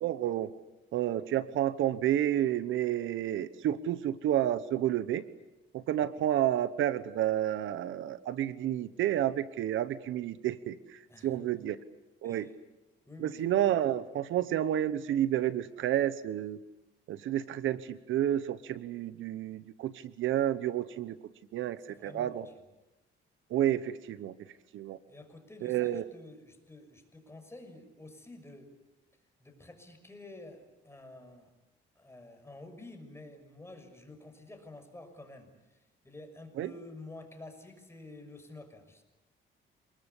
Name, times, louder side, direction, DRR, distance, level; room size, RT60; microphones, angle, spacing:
voice 1, 0.0-0.5 0.9-5.2 5.7-10.8 11.2-11.8 12.2-12.5 13.2-16.6 17.1-19.9 20.2-21.2 21.5-22.5 23.5-24.3 24.7-25.0 25.6-26.0 36.6-36.7, right 11 dB, 80° right, 15 dB, 1.0 m, -30 dB
voice 2, 11.1-11.7 12.2-12.5 13.0-13.5 21.9-22.7 25.1-28.8 29.4-31.5 31.9-39.0, left 2 dB, 15° left, 6 dB, 6.4 m, -50 dB
28.5 x 21.0 x 8.3 m, 0.99 s
cardioid pair, 90°, 20 cm